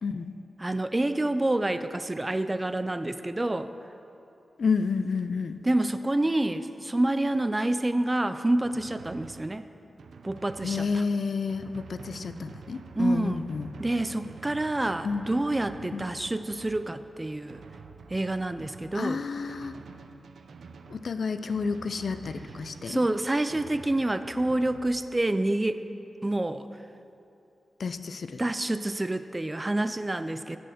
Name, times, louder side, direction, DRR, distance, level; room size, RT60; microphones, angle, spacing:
voice 1, 0.0-0.3 4.6-5.6 10.6-13.7 15.0-15.3 15.9-16.1 18.9-19.7 20.9-23.0 27.8-28.4, left 5 dB, 65° left, 11 dB, 0.4 m, -30 dB
voice 2, 0.6-3.7 5.6-9.7 10.2-11.0 13.0-13.4 13.8-17.6 18.1-19.2 22.9-25.9 26.2-26.7 28.4-30.6, right 1 dB, 20° right, 11 dB, 0.3 m, -28 dB
Drum, 8.6-25.0, right 5 dB, 85° right, 0.5 m, -48 dB
7.9 x 7.4 x 6.6 m, 2.8 s
wide cardioid pair, 100°, 0 cm